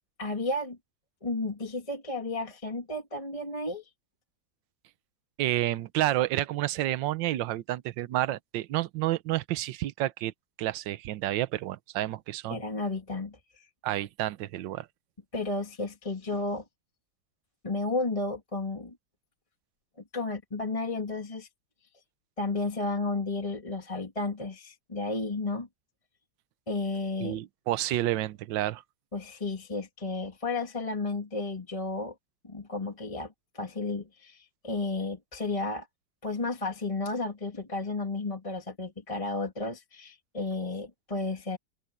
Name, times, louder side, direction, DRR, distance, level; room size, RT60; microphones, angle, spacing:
voice 1, 0.2-0.8 1.2-3.8 12.5-13.7 15.3-16.6 17.6-19.0 20.1-21.5 22.4-25.7 26.7-27.4 29.1-32.1 32.4-35.9 36.2-41.6, left 3 dB, 15° left, 2.3 m, -33 dB
voice 2, 5.4-10.3 10.6-12.6 13.8-14.9 27.2-28.8, right 14 dB, 80° right, 1.4 m, -30 dB
omnidirectional pair, 2.0 m